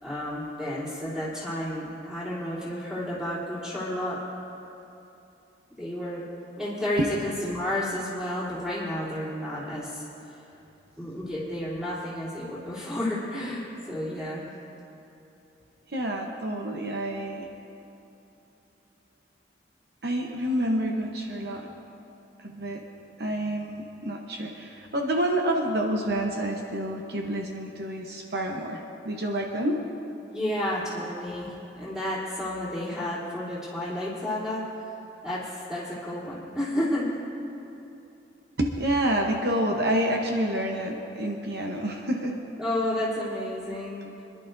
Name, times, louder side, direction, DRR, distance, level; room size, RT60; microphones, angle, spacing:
voice 1, 0.0-4.2 5.8-6.2 6.6-10.0 11.0-14.4 30.3-34.6 35.2-37.1 42.6-44.2, left 1 dB, 5° right, -9 dB, 3.1 m, -31 dB
voice 2, 15.9-17.5 20.0-21.7 22.4-22.8 23.2-29.8 38.6-42.4, right 1 dB, 60° right, 1 dB, 0.9 m, -28 dB
26.0 x 11.0 x 2.6 m, 2.9 s
head